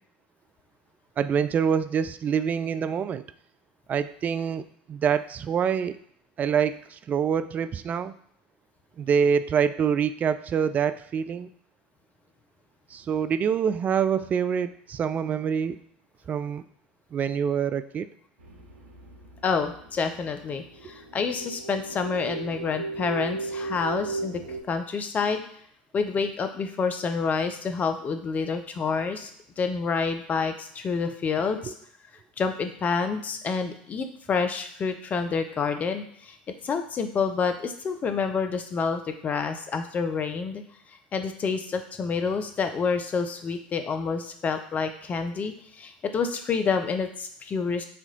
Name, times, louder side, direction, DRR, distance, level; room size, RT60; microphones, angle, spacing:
voice 1, 1.2-3.3 3.9-6.0 6.4-8.1 9.0-11.5 12.9-15.8 16.3-16.6 17.1-18.1 31.6-31.7, right 7 dB, 30° right, 12 dB, 0.3 m, -26 dB
sound 1, 18.4-24.6, right 3 dB, 75° right, 0.9 m, -36 dB
voice 2, 19.4-24.4 24.7-25.4 25.9-29.3 29.6-31.7 32.4-36.4 36.6-40.6 41.1-47.8, left 5 dB, 30° left, 7 dB, 0.7 m, -28 dB
4.3 x 2.9 x 3.9 m, 0.67 s
hypercardioid pair, 75°, 5 cm